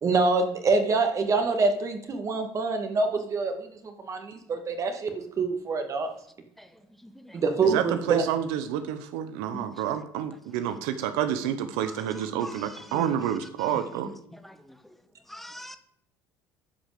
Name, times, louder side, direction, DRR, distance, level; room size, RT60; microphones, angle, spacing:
voice 1, 0.0-6.1 7.3-8.3, right 4 dB, 40° right, 2.0 m, -26 dB
voice 2, 6.6-7.4 9.5-10.0 11.8-13.9 14.3-15.8, equal, ahead, 1.2 m, -45 dB
voice 3, 7.7-14.1, right 9 dB, 85° right, 0.9 m, -29 dB
10.5 x 5.2 x 7.6 m
supercardioid pair, 100°, 8 cm